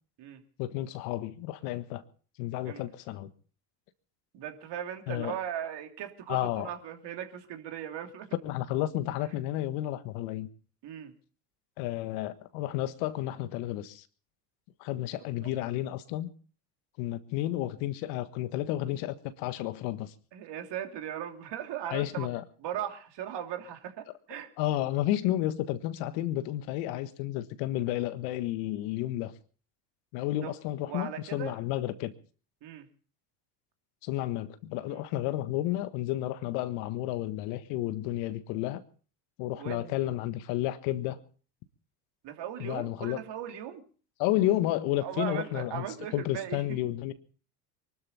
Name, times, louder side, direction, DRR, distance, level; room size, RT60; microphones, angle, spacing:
voice 1, 0.6-2.0 2.4-3.3 5.1-5.4 6.3-6.7 8.4-10.5 11.8-14.0 14.8-16.3 17.0-20.1 21.9-22.4 24.6-29.3 30.1-32.1 34.0-38.8 39.4-41.2 42.6-43.2 44.2-45.8 46.1-47.1, left 14 dB, 75° left, 1.5 m, -31 dB
voice 2, 4.3-8.3 10.8-11.1 15.4-15.5 20.3-22.3 22.6-24.5 30.4-30.5 30.9-31.6 32.6-32.9 34.9-35.0 39.6-40.1 42.2-43.8 45.0-46.8, right 10 dB, 60° right, 2.9 m, -38 dB
23.5 x 12.5 x 4.2 m
hypercardioid pair, 75°, 48 cm